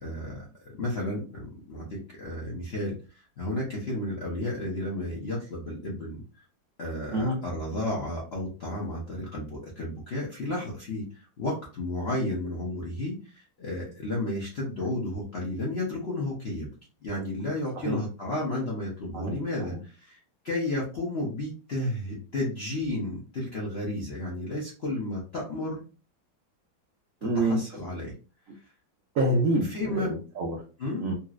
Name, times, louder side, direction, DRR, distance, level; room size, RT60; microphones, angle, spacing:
voice 1, 0.0-6.2 6.8-16.7 17.0-20.2 20.4-25.8 27.3-28.1 29.7-30.1 30.8-31.1, left 1 dB, 60° left, -4 dB, 0.6 m, -32 dB
voice 2, 27.2-27.6 29.1-30.6 31.0-31.1, right 1 dB, 90° right, -1 dB, 0.7 m, -26 dB
4.2 x 2.0 x 2.4 m, 0.35 s
omnidirectional pair, 2.2 m